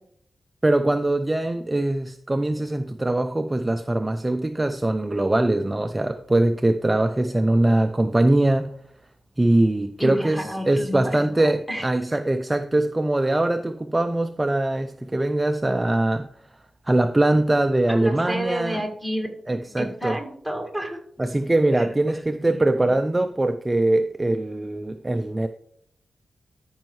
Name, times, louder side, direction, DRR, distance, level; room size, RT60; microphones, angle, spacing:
voice 1, 0.6-8.7 9.4-16.3 16.9-18.8 19.5-20.2 21.2-25.5, right 1 dB, 15° right, 0.4 m, -22 dB
voice 2, 10.0-11.1 11.7-11.9 17.9-21.0 21.7-21.9 22.5-22.9, equal, 5° left, 1.9 m, -30 dB
13.5 x 5.4 x 3.2 m
wide cardioid pair, 105°, 0 cm